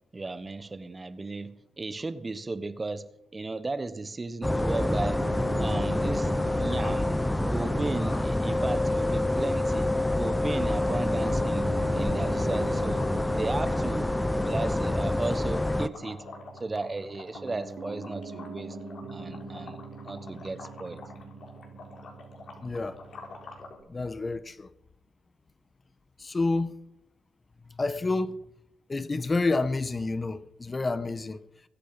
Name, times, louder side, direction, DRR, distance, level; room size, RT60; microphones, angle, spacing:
voice 1, 0.1-5.3 5.6-7.2 7.5-13.1 13.4-14.1 14.4-16.2 16.6-18.8 19.1-19.8 20.0-21.0, right 3 dB, 30° right, 1.2 m, -35 dB
sound 1, 4.4-15.9, left 1 dB, 10° left, 0.8 m, -27 dB
Piano, 4.4-23.8, right 3 dB, 65° right, 3.5 m, -42 dB
sound 2, 6.3-23.8, left 4 dB, 60° left, 4.1 m, -47 dB
voice 2, 22.6-23.0 23.9-24.7 26.2-26.7 27.8-28.4 28.9-31.4, left 3 dB, 30° left, 1.3 m, -29 dB
22.0 x 8.5 x 5.8 m
supercardioid pair, 55°, 0 cm